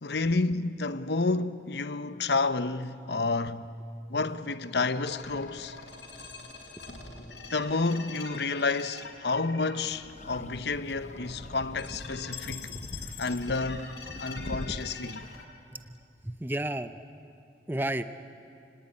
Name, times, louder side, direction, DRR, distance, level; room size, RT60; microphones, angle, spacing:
voice 1, 0.0-3.7 4.1-5.8 7.5-12.7 13.2-15.2, left 3 dB, 65° left, 0.9 m, -30 dB
sound 1, 4.7-15.4, left 4 dB, 80° left, 4.8 m, -44 dB
sound 2, 10.0-15.4, left 1 dB, 40° left, 0.9 m, -42 dB
voice 2, 16.2-16.9 17.7-18.0, right 1 dB, 10° right, 0.6 m, -32 dB
29.5 x 18.5 x 9.9 m
head